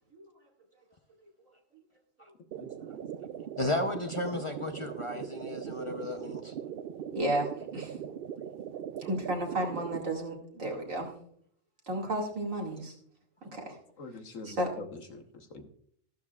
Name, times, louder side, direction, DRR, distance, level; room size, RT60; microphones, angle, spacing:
sound 1, 2.5-10.0, right 9 dB, 65° right, 0.6 m, -40 dB
voice 1, 3.6-6.5, left 2 dB, 30° left, 5 dB, 0.6 m, -34 dB
voice 2, 7.1-8.0 9.0-11.1 11.9-12.9 13.5-13.8 14.4-14.7, right 1 dB, 85° right, 0 dB, 2.6 m, -33 dB
voice 3, 14.0-15.7, left 3 dB, 80° left, 6 dB, 1.5 m, -45 dB
14.5 x 11.5 x 2.4 m, 0.64 s
omnidirectional pair, 1.3 m